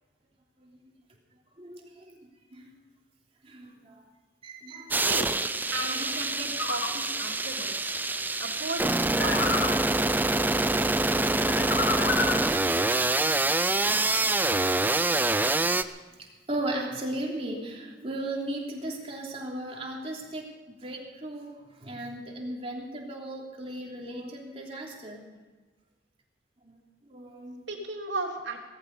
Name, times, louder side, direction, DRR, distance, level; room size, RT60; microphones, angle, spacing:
voice 1, 1.6-2.7 3.4-4.0 4.4-5.3 16.1-25.2 26.6-27.6, right 1 dB, 30° right, -1 dB, 3.2 m, -37 dB
sound 1, 4.9-15.8, right 2 dB, 10° right, 0.5 m, -26 dB
voice 2, 4.9-5.4 5.7-7.9 8.4-9.6 27.7-28.6, right 2 dB, 70° right, 1 dB, 3.1 m, -36 dB
sound 2, 6.6-6.9 9.2-9.8 11.5-12.5, left 3 dB, 70° left, 2.2 m, -29 dB
18.0 x 14.5 x 5.5 m, 1.3 s
head